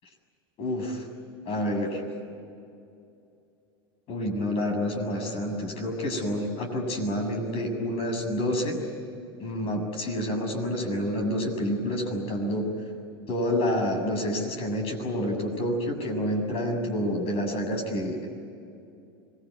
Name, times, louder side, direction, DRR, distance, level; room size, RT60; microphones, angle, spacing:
voice 1, 0.6-1.1 1.5-2.0 4.1-8.8 9.4-12.7 13.3-18.3, equal, 45° left, 4 dB, 7.3 m, -28 dB
26.0 x 22.0 x 9.8 m, 2.6 s
hypercardioid pair, 90°, 13 cm